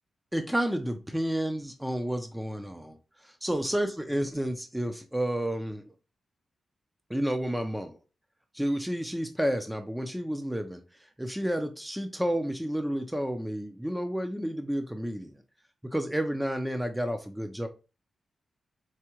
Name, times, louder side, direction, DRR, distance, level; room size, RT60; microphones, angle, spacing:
voice 1, 0.3-5.9 7.1-8.0 8.5-10.8 11.2-15.3 15.8-17.7, equal, 5° right, 6 dB, 0.5 m, -31 dB
4.7 x 3.3 x 3.0 m, 0.30 s
wide cardioid pair, 105°, 0 cm